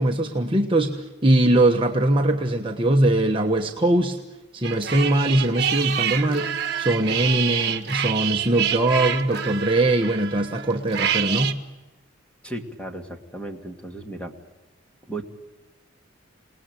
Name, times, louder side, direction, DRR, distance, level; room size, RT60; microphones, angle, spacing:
voice 1, 0.0-4.2 4.5-11.6, right 1 dB, 25° right, 2 dB, 1.3 m, -21 dB
sound 1, 4.6-11.5, right 9 dB, 50° right, 1.5 m, -27 dB
voice 2, 12.4-14.3 15.1-15.2, right 1 dB, 5° left, 3 dB, 2.3 m, -35 dB
28.5 x 19.5 x 9.3 m, 1.1 s
head